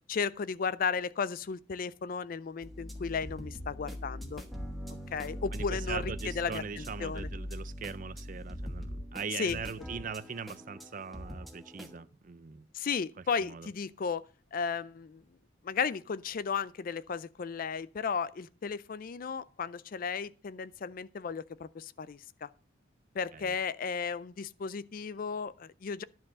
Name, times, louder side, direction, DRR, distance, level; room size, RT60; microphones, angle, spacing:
voice 1, 0.1-4.4 5.1-7.3 9.3-9.6 12.7-14.2 14.5-15.2 15.6-22.5 23.2-26.0, left 6 dB, 45° left, 0.4 m, -34 dB
sound 1, 2.6-12.0, equal, ahead, 1.3 m, -41 dB
voice 2, 5.5-12.7 13.4-13.7 23.3-23.5, right 5 dB, 40° right, 0.5 m, -41 dB
11.0 x 4.6 x 7.3 m
head